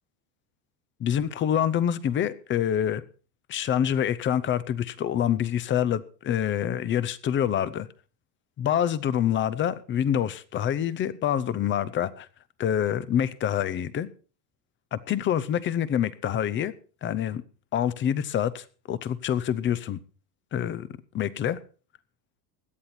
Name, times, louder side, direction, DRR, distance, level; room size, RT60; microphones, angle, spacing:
voice 1, 1.0-3.0 3.5-7.9 8.6-12.3 12.6-14.1 14.9-16.7 17.0-17.4 17.7-20.0 20.5-20.9 21.1-21.6, left 9 dB, 25° left, 0.6 m, -26 dB
17.0 x 11.5 x 4.3 m
supercardioid pair, 150°, 48 cm